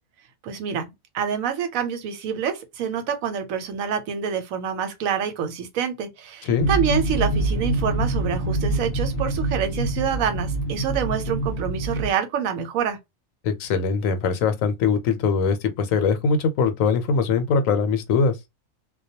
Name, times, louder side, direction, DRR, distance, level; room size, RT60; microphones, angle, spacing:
voice 1, 0.4-13.0, right 8 dB, 85° right, 1.0 m, -27 dB
sound 1, 6.6-12.1, right 1 dB, 55° left, 0.7 m, -25 dB
voice 2, 13.4-18.4, left 5 dB, 80° left, 1.0 m, -22 dB
2.2 x 2.2 x 2.7 m
omnidirectional pair, 1.4 m